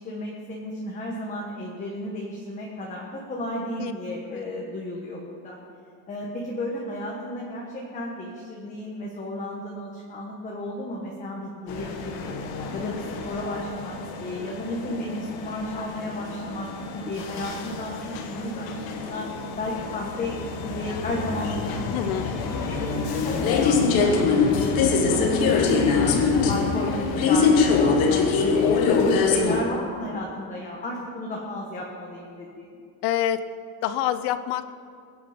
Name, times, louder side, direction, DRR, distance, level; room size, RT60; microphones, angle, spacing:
voice 1, 0.0-5.6 6.1-12.4 12.7-19.3 19.6-26.1 26.5-27.0 27.3-28.6 29.0-32.7, left 1 dB, 20° left, -2 dB, 1.4 m, -33 dB
sound 1, 11.7-29.6, left 4 dB, 65° left, 1.5 m, -24 dB
voice 2, 21.9-22.3 25.8-26.7 28.9-29.1 33.0-33.4 33.8-34.7, left 11 dB, 90° left, 12 dB, 0.8 m, -27 dB
22.5 x 8.7 x 5.1 m, 2.3 s
cardioid pair, 180°, 38 cm